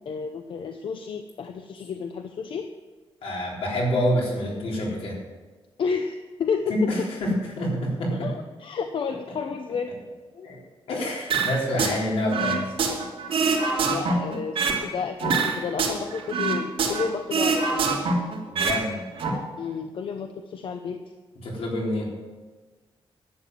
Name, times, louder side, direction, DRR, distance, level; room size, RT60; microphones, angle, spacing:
voice 1, 0.0-2.7 5.8-6.9 8.2-9.9 13.8-17.8 19.6-21.0, left 5 dB, 60° left, 6 dB, 0.8 m, -31 dB
voice 2, 3.2-5.2 6.7-8.3 10.3-10.6 10.9-12.7 18.5-19.1 21.4-22.2, left 1 dB, 85° left, -2 dB, 3.8 m, -27 dB
sound 1, 11.3-12.0 12.3-14.8 15.2-17.1 17.3-18.8 19.1-19.3, right 4 dB, 70° right, 2.9 m, -24 dB
11.0 x 8.8 x 7.6 m, 1.3 s
wide cardioid pair, 140°, 10 cm